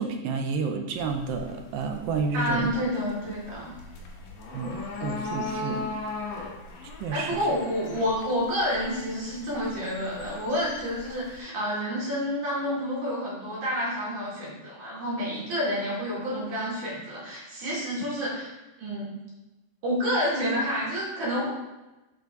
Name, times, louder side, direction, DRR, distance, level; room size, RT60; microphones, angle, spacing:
voice 1, 0.0-2.8 4.5-5.9 7.0-7.4, right 4 dB, 80° right, 4 dB, 2.2 m, -30 dB
sound 1, 1.0-11.4, left 3 dB, 65° left, 2.4 m, -39 dB
voice 2, 2.3-3.7 7.1-18.5 18.8-19.1 19.8-21.5, equal, 55° right, -7 dB, 3.6 m, -29 dB
6.3 x 5.8 x 4.6 m, 1.1 s
omnidirectional pair, 4.4 m